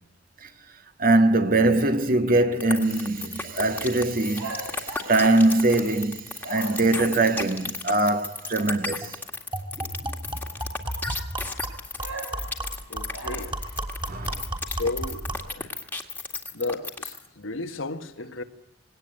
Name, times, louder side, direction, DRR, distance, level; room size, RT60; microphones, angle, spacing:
voice 1, 1.0-9.2 14.1-14.4, right 2 dB, 45° right, 1.7 m, -22 dB
sound 1, 2.6-17.3, left 3 dB, 10° left, 1.9 m, -33 dB
sound 2, 4.3-6.0 6.4-7.1 12.0-13.8, right 3 dB, 85° right, 7.1 m, -39 dB
sound 3, 8.6-8.7 9.0-9.1 9.5-15.5, right 1 dB, 25° right, 3.0 m, -34 dB
voice 2, 12.9-13.5 14.7-15.2 15.5-15.7 16.5-18.4, left 3 dB, 80° left, 1.6 m, -33 dB
20.0 x 18.0 x 9.0 m
head